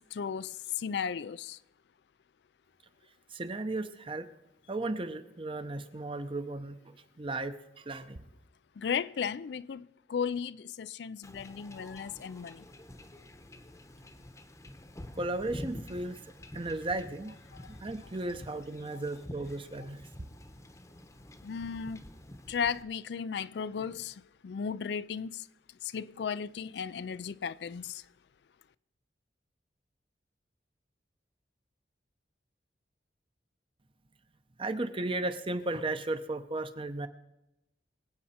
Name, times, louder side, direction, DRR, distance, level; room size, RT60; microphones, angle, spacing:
voice 1, 0.1-1.6 8.8-12.6 21.4-22.0 22.5-24.1 24.4-25.3 25.9-28.0, left 6 dB, 65° left, 0.4 m, -35 dB
voice 2, 3.3-4.3 4.7-8.2 15.1-16.2 16.5-17.3 17.8-20.1 34.6-37.1, right 2 dB, 30° right, 0.8 m, -35 dB
Wind / Ocean / Boat Water vehicle, 11.2-22.8, left 1 dB, 15° left, 0.9 m, -48 dB
24.5 x 8.7 x 4.3 m
head